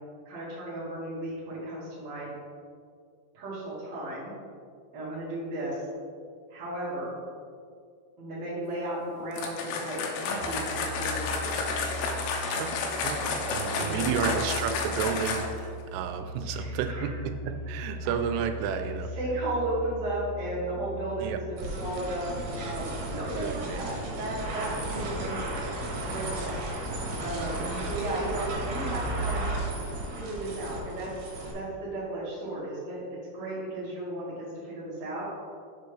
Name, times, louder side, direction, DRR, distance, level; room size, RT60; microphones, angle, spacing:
voice 1, 0.3-2.3 3.3-4.3 4.9-5.8 6.5-7.1 8.2-11.8 13.7-14.3 16.4-17.2 18.3-18.7 19.1-22.3 22.6-25.8 26.0-26.6 27.2-29.5 30.1-31.1 31.5-35.3, right 1 dB, 50° right, -10 dB, 2.2 m, -35 dB
sound 1, 9.3-15.7, left 4 dB, 85° left, 2.3 m, -31 dB
Musical instrument, 10.3-22.0, equal, 70° left, 2.6 m, -39 dB
voice 2, 13.5-19.1 21.2-21.4 23.4-23.8 27.6-27.9, right 8 dB, 90° right, 8 dB, 3.1 m, -32 dB
sound 2, 21.6-31.5, right 1 dB, 70° right, 3.3 m, -34 dB
6.8 x 6.8 x 3.2 m, 2.2 s
omnidirectional pair, 5.6 m